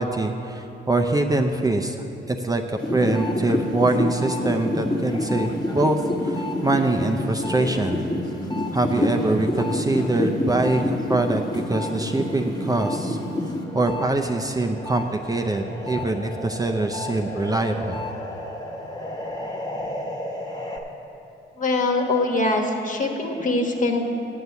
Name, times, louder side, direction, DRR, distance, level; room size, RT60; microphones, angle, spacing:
voice 1, 0.0-8.0 8.7-13.2 13.7-18.0, right 2 dB, 20° right, 4 dB, 0.5 m, -24 dB
sound 1, 2.8-14.1 14.4-20.8, left 1 dB, 20° left, 1.2 m, -28 dB
voice 2, 21.6-24.1, left 2 dB, 40° left, 2 dB, 1.3 m, -23 dB
8.0 x 8.0 x 7.0 m, 2.9 s
cardioid pair, 90°, 20 cm